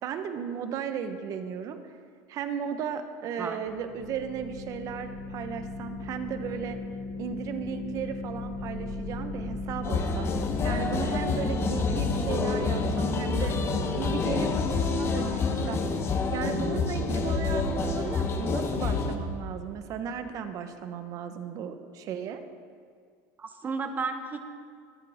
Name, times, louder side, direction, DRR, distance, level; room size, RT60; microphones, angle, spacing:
voice 1, 0.0-1.9 2.3-6.8 7.2-10.3 10.6-13.5 14.0-15.8 16.3-22.4, right 7 dB, 45° right, 8 dB, 1.1 m, -35 dB
sound 1, 3.7-19.9, left 2 dB, 70° left, 3.0 m, -38 dB
sound 2, 9.8-19.2, left 4 dB, 30° left, 1.0 m, -28 dB
voice 2, 23.4-24.4, right 4 dB, 20° right, 7 dB, 1.0 m, -33 dB
22.5 x 7.6 x 3.6 m, 2.1 s
supercardioid pair, 130°, 8 cm